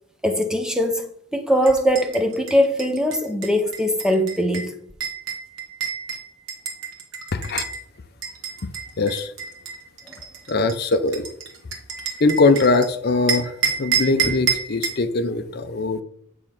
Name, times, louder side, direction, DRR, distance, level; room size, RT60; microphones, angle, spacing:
voice 1, 0.2-4.8 10.1-10.2, equal, 5° right, 0.6 m, -21 dB
sound 1, 1.6-7.8 8.2-12.9 13.3-15.0, right 6 dB, 60° right, 1.6 m, -29 dB
voice 2, 7.3-7.7 8.6-8.7 9.0-9.3 10.5-11.3 12.2-16.0, left 3 dB, 50° left, 0.5 m, -21 dB
8.6 x 3.6 x 5.8 m
head